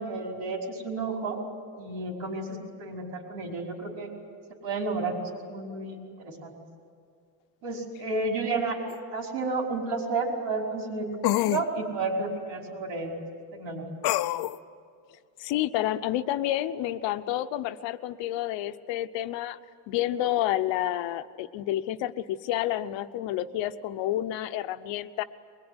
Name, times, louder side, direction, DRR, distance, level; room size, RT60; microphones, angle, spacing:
voice 1, 0.0-1.4 1.8-2.5 2.8-4.1 4.6-6.6 7.6-8.8 9.1-13.1 13.5-13.8, right 3 dB, 90° right, 0 dB, 5.4 m, -31 dB
sound 1, 8.9-9.0 11.2-11.7 14.0-14.6, left 16 dB, 60° left, 0.6 m, -25 dB
voice 2, 15.4-19.6 19.9-25.2, left 13 dB, 80° left, 11 dB, 1.0 m, -29 dB
23.0 x 21.0 x 9.8 m, 2.2 s
cardioid pair, 150°, 44 cm